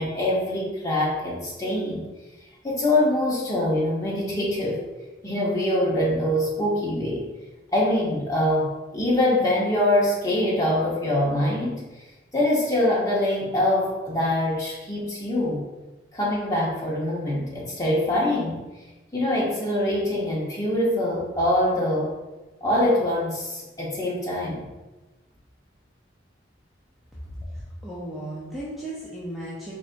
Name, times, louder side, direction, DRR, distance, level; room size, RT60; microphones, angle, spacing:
voice 1, 0.0-2.0 2.6-4.8 5.2-7.3 7.7-11.8 12.3-15.6 16.1-18.6 19.1-22.1 22.6-24.6, left 1 dB, 20° left, -5 dB, 0.9 m, -24 dB
voice 2, 27.8-29.8, right 1 dB, ahead, -9 dB, 0.5 m, -35 dB
4.2 x 3.3 x 2.5 m, 1.1 s
head